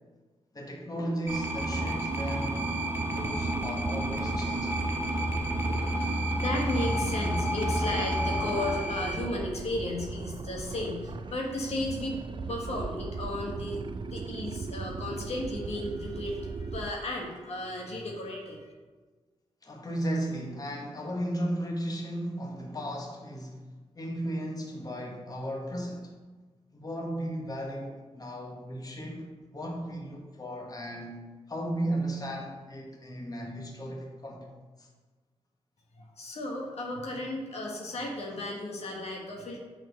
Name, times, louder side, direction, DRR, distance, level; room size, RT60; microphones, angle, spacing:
voice 1, 0.5-2.6 3.1-4.7 19.6-23.6 23.9-26.1 26.7-34.5 34.8-34.9, right 1 dB, 35° left, 1.4 m, -35 dB
sound 1, 1.3-9.1, right 1 dB, 20° right, 1.6 m, -30 dB
sound 2, 3.0-16.9, right 5 dB, 45° right, 0.4 m, -39 dB
voice 2, 6.0-18.6 36.2-39.6, left 1 dB, 70° left, 1.4 m, -34 dB
6.3 x 4.4 x 6.3 m
cardioid pair, 65°, 11 cm